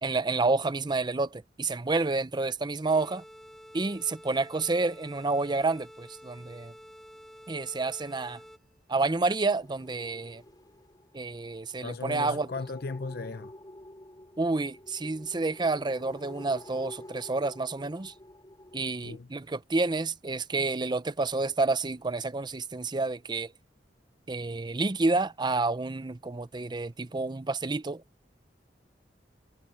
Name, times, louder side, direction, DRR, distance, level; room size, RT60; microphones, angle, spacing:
voice 1, 0.0-3.2 3.7-6.7 7.5-8.4 8.9-10.4 11.1-12.5 14.4-18.1 18.7-23.5 24.3-28.0, right 3 dB, 25° right, 0.6 m, -29 dB
sound 1, 2.9-8.8, equal, ahead, 1.9 m, -50 dB
sound 2, 9.1-18.9, left 1 dB, 25° left, 4.1 m, -49 dB
voice 2, 11.8-13.5 19.0-19.3, left 3 dB, 60° left, 0.7 m, -36 dB
head